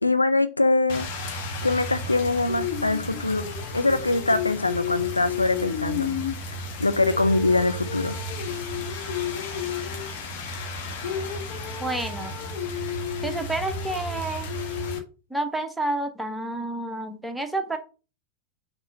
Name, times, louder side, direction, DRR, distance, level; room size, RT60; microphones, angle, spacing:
voice 1, 0.0-1.1 1.6-6.1 6.8-8.2, left 2 dB, 85° left, 0.6 m, -23 dB
Rain, 0.9-15.0, left 4 dB, 50° left, 1.3 m, -31 dB
voice 2, 11.8-12.4 13.2-14.5 15.3-17.8, right 2 dB, 5° right, 0.9 m, -29 dB
5.9 x 3.1 x 5.4 m
figure-of-eight pair, 90°, 0 cm